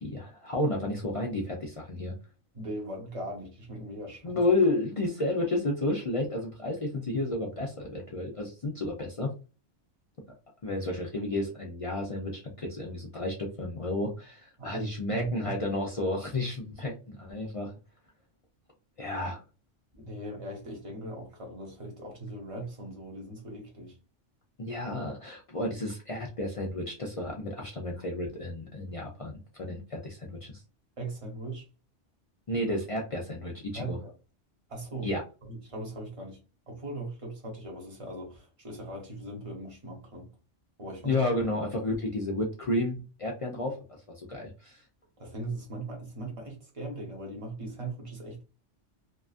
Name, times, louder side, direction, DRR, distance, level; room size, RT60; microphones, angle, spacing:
voice 1, 0.0-2.1 4.2-9.3 10.6-17.7 19.0-19.4 24.6-30.6 32.5-34.0 35.0-35.2 41.0-43.7 44.2-44.8, left 2 dB, 55° left, 0.3 m, -31 dB
voice 2, 2.5-4.4 14.6-15.6 19.9-24.0 31.0-31.7 33.7-34.1 34.7-35.1 35.4-36.4 36.7-40.3 40.8-41.2 43.6-43.7 45.2-48.4, right 2 dB, 30° right, 0.9 m, -39 dB
2.8 x 2.3 x 2.4 m
omnidirectional pair, 1.2 m